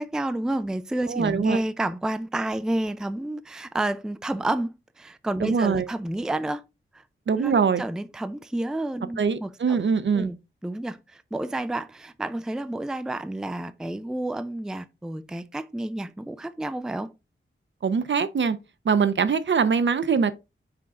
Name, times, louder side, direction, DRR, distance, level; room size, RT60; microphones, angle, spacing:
voice 1, 0.0-6.6 7.3-9.8 10.1-10.4 10.6-17.1, right 1 dB, 5° right, 0.4 m, -30 dB
voice 2, 1.1-1.6 5.4-5.9 7.3-7.8 9.2-10.3 17.8-18.6 18.8-20.3, right 6 dB, 60° right, 0.7 m, -23 dB
6.0 x 4.5 x 3.7 m
wide cardioid pair, 120°, 21 cm